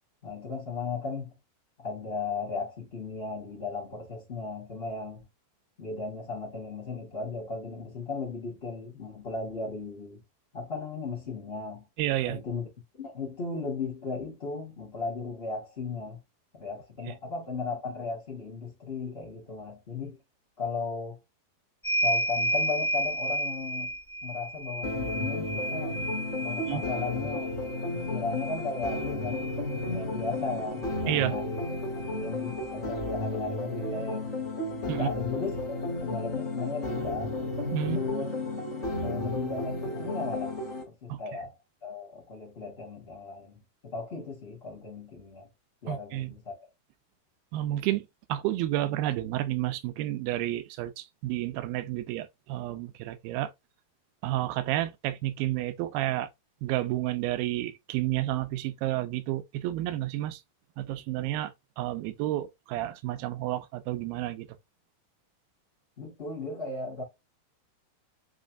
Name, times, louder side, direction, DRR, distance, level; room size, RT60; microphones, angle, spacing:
voice 1, 0.2-1.3 1.8-5.2 5.8-10.2 10.5-11.9 12.3-12.7 12.9-16.2 16.5-20.2 20.6-21.2 22.0-23.9 24.2-26.0 26.4-27.5 27.9-31.7 32.1-34.3 34.9-37.4 37.8-38.3 39.0-40.5 40.8-41.5 41.8-45.5 45.8-46.5 66.0-67.0, left 4 dB, 75° left, 0.5 m, -36 dB
voice 2, 12.0-12.4 26.6-26.8 31.1-31.4 34.9-35.1 37.7-38.0 41.1-41.2 45.9-46.3 47.5-53.5 54.2-56.3 56.6-60.4 60.8-64.5, right 14 dB, 80° right, 2.3 m, -30 dB
sound 1, 21.8-30.0 31.2-31.3 31.6-32.7, equal, 15° left, 1.1 m, -32 dB
sound 2, 24.8-40.8, left 2 dB, 30° left, 0.7 m, -33 dB
6.3 x 2.9 x 2.4 m
omnidirectional pair, 4.6 m